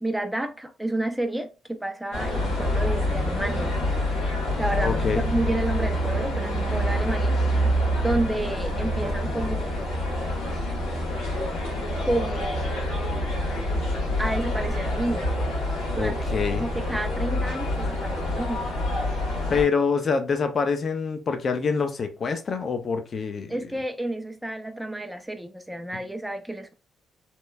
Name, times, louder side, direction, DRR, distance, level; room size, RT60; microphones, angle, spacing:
voice 1, 0.0-3.7 4.6-9.9 12.1-12.8 14.2-15.3 16.0-18.7 19.5-19.7 23.5-26.7, right 1 dB, 5° right, 0.4 m, -30 dB
sound 1, 2.1-19.6, left 1 dB, 85° left, 1.2 m, -26 dB
voice 2, 4.8-5.2 15.9-16.7 19.5-23.6, left 5 dB, 45° left, 0.5 m, -26 dB
2.9 x 2.0 x 2.3 m
cardioid pair, 90°, 0 cm